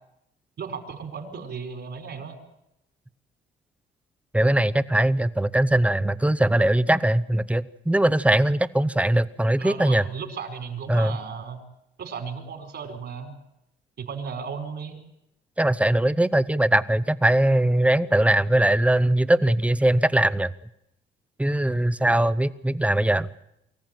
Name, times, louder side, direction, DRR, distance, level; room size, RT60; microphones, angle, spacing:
voice 1, 0.6-2.3 9.6-11.6 12.0-13.4 14.0-15.0, right 6 dB, 60° right, 4 dB, 4.7 m, -35 dB
voice 2, 4.3-10.0 10.9-11.2 15.6-20.5 21.4-23.3, right 1 dB, 5° right, 16 dB, 0.8 m, -21 dB
24.5 x 14.5 x 9.2 m, 0.84 s
cardioid pair, 90°, 20 cm